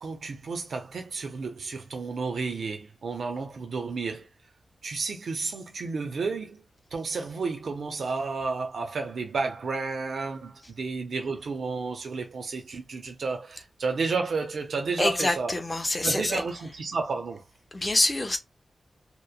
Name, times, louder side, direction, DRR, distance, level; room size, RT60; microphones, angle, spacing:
voice 1, 0.0-4.3 4.8-6.6 6.9-15.6 16.0-17.4, right 4 dB, 70° right, 0.5 m, -31 dB
voice 2, 15.0-16.4 17.7-18.4, left 2 dB, 20° left, 0.5 m, -26 dB
2.9 x 2.0 x 2.2 m
wide cardioid pair, 165°, 0 cm